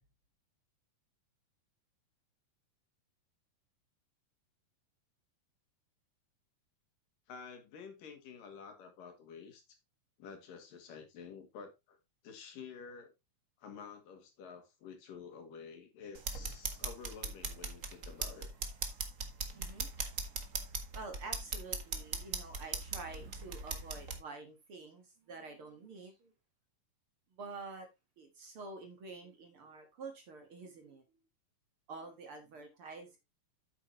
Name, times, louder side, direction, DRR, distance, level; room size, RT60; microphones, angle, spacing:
voice 1, 7.3-9.8 10.2-12.0 12.2-13.1 13.6-18.5, left 6 dB, 85° left, 3.8 m, -50 dB
sound 1, 16.1-24.2, right 4 dB, 65° right, 0.7 m, -40 dB
voice 2, 19.5-19.9 20.9-26.3 27.3-27.9 28.2-31.0 31.9-33.2, right 3 dB, 50° right, 2.1 m, -48 dB
8.9 x 8.6 x 3.0 m
omnidirectional pair, 3.8 m